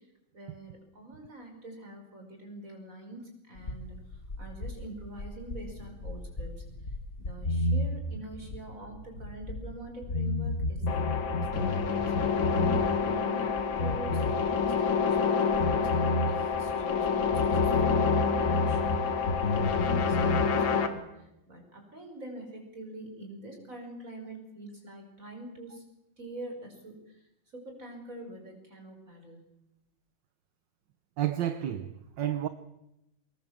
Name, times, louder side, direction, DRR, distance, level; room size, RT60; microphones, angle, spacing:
voice 1, 0.3-3.9 4.4-6.6 7.2-12.5 13.0-15.9 16.3-19.2 19.4-21.1 21.5-25.8 26.2-26.9 27.5-29.5, right 1 dB, 40° right, 6.0 m, -45 dB
sound 1, 3.6-9.8 10.0-13.1 13.4-15.2 15.5-19.0 19.2-20.5, left 1 dB, 40° left, 1.9 m, -31 dB
sound 2, 10.9-20.9, left 6 dB, 80° left, 2.5 m, -28 dB
voice 2, 31.2-32.5, right 11 dB, 70° right, 1.7 m, -31 dB
25.5 x 20.5 x 7.4 m
omnidirectional pair, 2.1 m